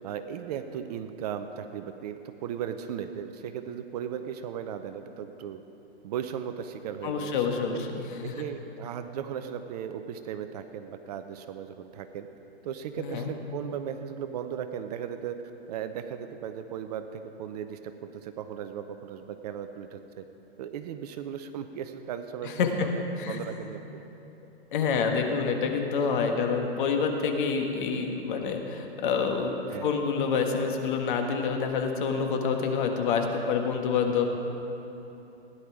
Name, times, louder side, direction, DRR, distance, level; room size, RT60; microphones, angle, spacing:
voice 1, 0.0-5.6 6.0-7.5 8.2-12.3 12.6-15.4 15.7-20.2 20.6-24.0 29.7-30.0, right 8 dB, 35° right, 8 dB, 0.7 m, -37 dB
voice 2, 7.0-8.3 13.0-13.3 22.4-22.9 23.2-23.6 24.7-29.5 29.8-34.2, left 5 dB, 50° left, 3 dB, 1.7 m, -27 dB
16.5 x 10.5 x 4.9 m, 3.0 s
hypercardioid pair, 135°, 33 cm